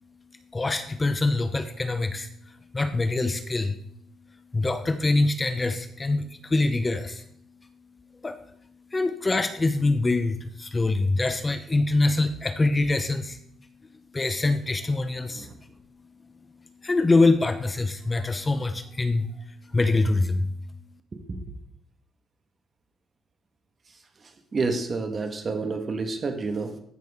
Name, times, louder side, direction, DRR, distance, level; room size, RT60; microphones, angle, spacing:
voice 1, 0.3-3.8 4.3-7.3 8.1-8.5 8.9-13.4 14.1-15.7 16.8-20.5, left 2 dB, 25° left, 10 dB, 0.8 m, -25 dB
voice 2, 21.1-21.5 23.9-26.8, right 3 dB, 40° right, 6 dB, 1.5 m, -30 dB
14.5 x 6.1 x 3.6 m, 0.71 s
cardioid pair, 90°, 0 cm